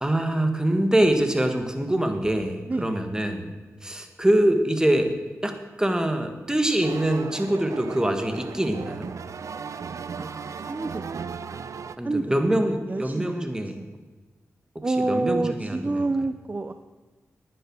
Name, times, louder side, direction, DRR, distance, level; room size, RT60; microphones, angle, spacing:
voice 1, 0.0-3.5 3.8-5.1 5.4-9.1 12.0-13.8 14.7-16.1, right 1 dB, 10° right, 6 dB, 1.6 m, -24 dB
sound 1, 6.8-12.0, right 6 dB, 70° right, 0.6 m, -36 dB
voice 2, 10.1-11.2 12.0-12.4 12.9-13.9 14.8-16.7, right 2 dB, 30° right, 10 dB, 0.6 m, -28 dB
10.5 x 9.4 x 6.1 m, 1.3 s
cardioid pair, 70°, 6 cm